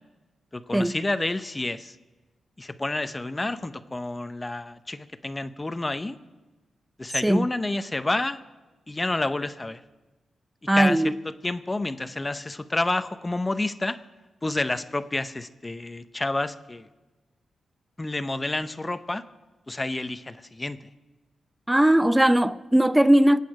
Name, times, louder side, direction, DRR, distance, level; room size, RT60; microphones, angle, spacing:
voice 1, 0.5-2.0 2.6-6.2 7.0-8.4 8.9-9.8 10.7-11.1 11.4-14.0 14.4-16.9 18.0-19.2 19.7-20.9, left 2 dB, 25° left, 0.8 m, -29 dB
voice 2, 10.7-11.1 21.7-23.4, right 1 dB, 10° right, 0.6 m, -19 dB
23.5 x 8.4 x 4.9 m
supercardioid pair, 45°, 0 cm